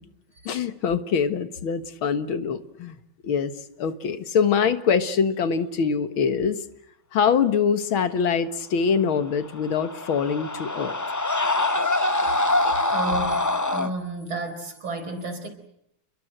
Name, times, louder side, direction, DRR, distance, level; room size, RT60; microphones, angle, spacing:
voice 1, 0.5-3.0 3.2-3.5 3.8-6.6 7.1-11.0, left 6 dB, 85° left, 11 dB, 2.3 m, -24 dB
Screaming, 9.4-13.9, left 2 dB, 20° left, 0.5 m, -24 dB
voice 2, 12.9-15.5, right 2 dB, 85° right, 8 dB, 5.3 m, -31 dB
30.0 x 21.5 x 7.8 m, 0.77 s
omnidirectional pair, 2.2 m